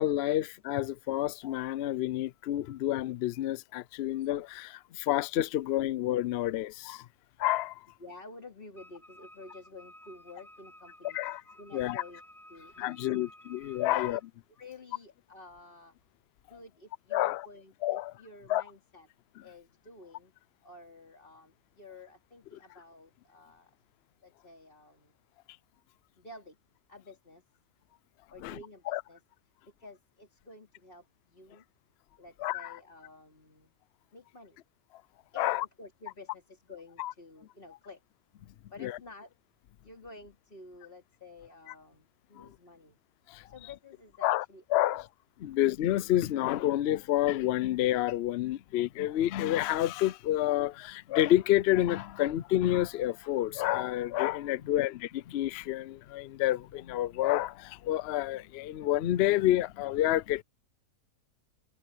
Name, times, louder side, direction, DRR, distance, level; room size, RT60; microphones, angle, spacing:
voice 1, 0.0-7.1 7.4-7.9 11.0-11.4 11.7-12.0 12.8-14.2 17.1-17.5 17.8-18.1 18.5-18.6 28.4-28.6 28.9-29.0 32.4-32.8 35.4-35.7 37.0-37.1 38.8-39.0 41.7-41.8 42.4-42.5 43.3-43.5 44.2-45.1 45.4-60.4, left 14 dB, 75° left, 0.5 m, -29 dB
voice 2, 8.0-12.2 12.5-13.3 13.9-14.2 14.6-15.9 16.5-19.1 19.4-20.3 20.6-23.7 24.2-25.2 26.2-26.6 26.9-27.4 28.3-29.2 29.8-31.6 32.2-33.7 34.1-34.6 35.3-35.5 35.8-38.0 38.7-39.3 39.8-43.0 43.4-45.0 54.5-54.8, left 2 dB, 35° left, 3.1 m, -51 dB
Wind instrument woodwind instrument, 8.8-14.3, equal, ahead, 4.3 m, -54 dB
omnidirectional pair, 1.7 m